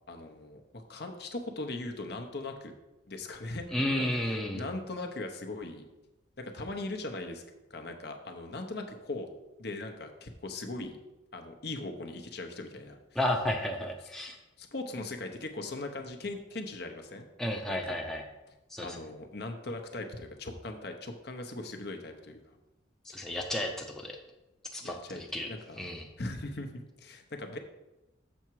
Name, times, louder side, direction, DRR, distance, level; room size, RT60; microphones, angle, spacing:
voice 1, 0.1-2.7 3.1-3.7 4.0-5.8 6.4-7.4 7.7-9.3 9.6-11.0 11.3-13.0 14.6-17.3 17.7-18.0 18.8-22.6 23.1-23.2 24.8-25.2 25.5-25.8 26.2-27.6, left 2 dB, 55° left, 4 dB, 0.8 m, -39 dB
voice 2, 3.7-4.6 13.2-14.4 17.4-18.2 18.7-19.0 23.1-24.2 24.7-25.5 25.8-26.1, left 1 dB, ahead, 0 dB, 0.6 m, -32 dB
7.1 x 5.9 x 4.6 m, 0.99 s
head